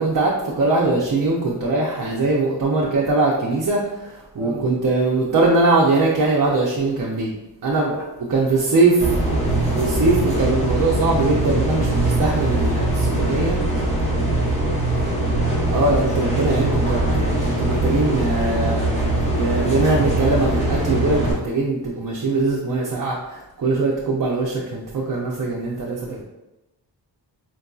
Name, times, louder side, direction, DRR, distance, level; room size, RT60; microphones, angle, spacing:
voice 1, 0.0-7.3 7.6-7.9 8.3-9.1 9.7-13.6 15.7-26.2, right 3 dB, 50° right, -3 dB, 0.6 m, -21 dB
sound 1, 9.0-21.3, right 1 dB, 15° left, 0.8 m, -21 dB
voice 2, 25.9-26.2, right 2 dB, 5° right, -4 dB, 0.3 m, -36 dB
4.5 x 2.6 x 2.3 m, 0.98 s
wide cardioid pair, 110°, 42 cm